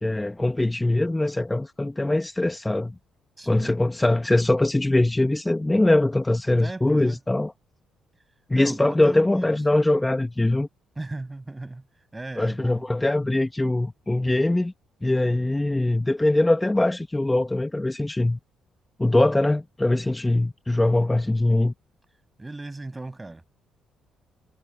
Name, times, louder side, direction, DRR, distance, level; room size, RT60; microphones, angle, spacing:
voice 1, 0.0-2.9 3.5-7.5 8.5-10.7 12.4-14.7 15.0-18.4 19.0-21.7, left 2 dB, 15° left, 1.7 m, -22 dB
voice 2, 3.4-3.8 6.5-7.2 8.5-10.0 11.0-11.8 12.1-12.9 22.4-23.5, right 2 dB, 20° right, 7.9 m, -37 dB
hypercardioid pair, 55°, 0 cm